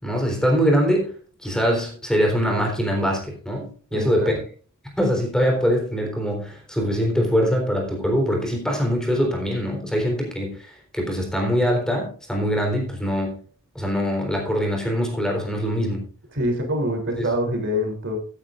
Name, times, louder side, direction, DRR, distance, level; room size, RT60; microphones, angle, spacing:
voice 1, 0.0-1.1 1.4-4.3 5.0-13.4 13.7-16.0 17.2-17.3, equal, 5° left, 1 dB, 3.7 m, -23 dB
voice 2, 3.9-4.3 16.3-18.2, equal, 60° right, 3 dB, 3.3 m, -25 dB
17.0 x 9.7 x 2.5 m, 0.40 s
head